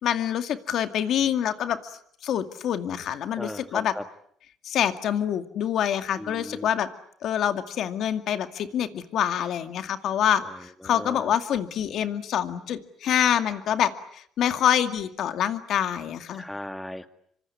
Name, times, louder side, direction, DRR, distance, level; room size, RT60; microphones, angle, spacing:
voice 1, 0.0-1.8 2.2-3.9 4.6-6.9 7.2-16.4, left 10 dB, 65° left, 9 dB, 2.2 m, -26 dB
voice 2, 3.4-4.0 6.2-6.7 10.5-11.3 16.3-17.1, left 1 dB, 5° left, 9 dB, 2.0 m, -37 dB
25.5 x 25.5 x 8.6 m, 0.66 s
cardioid pair, 100°, 0 cm